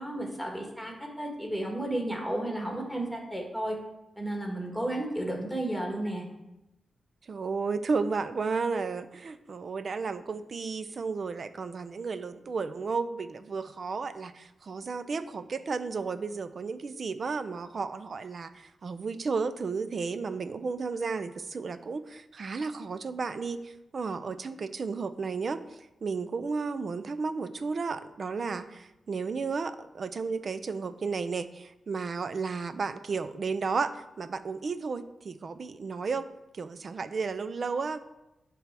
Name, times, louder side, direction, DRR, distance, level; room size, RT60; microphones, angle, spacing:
voice 1, 0.0-3.8 4.2-6.2, right 1 dB, 5° right, 0 dB, 1.8 m, -33 dB
voice 2, 7.2-36.3 36.5-38.0, right 4 dB, 50° right, 12 dB, 0.5 m, -33 dB
10.0 x 3.5 x 6.1 m, 0.94 s
wide cardioid pair, 115°, 0 cm